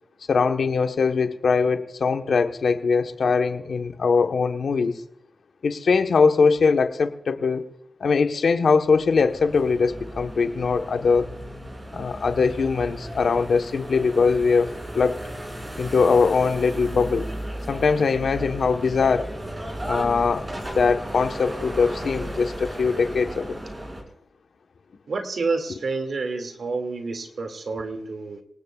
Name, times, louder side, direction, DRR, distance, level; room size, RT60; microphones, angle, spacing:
voice 1, 0.3-4.9 5.6-7.6 8.0-11.3 11.9-15.2 15.8-17.3 17.7-19.3 19.9-20.4 20.7-23.6, left 5 dB, 85° left, 6 dB, 1.2 m, -21 dB
sound 1, 8.8-24.0, right 1 dB, 30° right, 5.9 m, -35 dB
voice 2, 25.1-28.4, right 3 dB, 80° right, 5 dB, 2.3 m, -29 dB
26.5 x 19.0 x 2.4 m, 0.77 s
cardioid pair, 60°, 0 cm